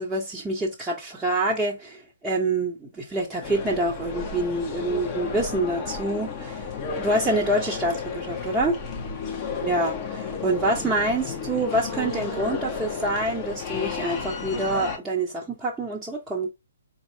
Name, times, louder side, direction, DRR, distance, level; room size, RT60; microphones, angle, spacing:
voice 1, 0.0-6.7 7.0-8.8 9.6-16.5, right 1 dB, 10° right, 0.7 m, -26 dB
sound 1, 3.4-15.0, left 5 dB, 30° left, 0.8 m, -32 dB
4.2 x 2.6 x 3.1 m
figure-of-eight pair, 125°, 0 cm